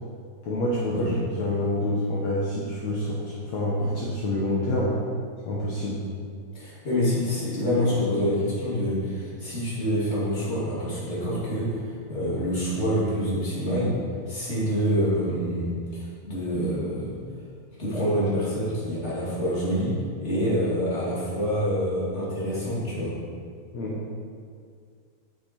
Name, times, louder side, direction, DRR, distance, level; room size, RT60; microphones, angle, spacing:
voice 1, 0.4-5.0 5.4-6.1 23.7-24.0, left 1 dB, 75° left, -5 dB, 1.6 m, -27 dB
voice 2, 6.5-11.8 12.1-14.0 14.3-17.2 17.8-23.2, equal, 25° left, -8 dB, 1.6 m, -26 dB
8.4 x 8.1 x 4.3 m, 2.1 s
omnidirectional pair, 4.6 m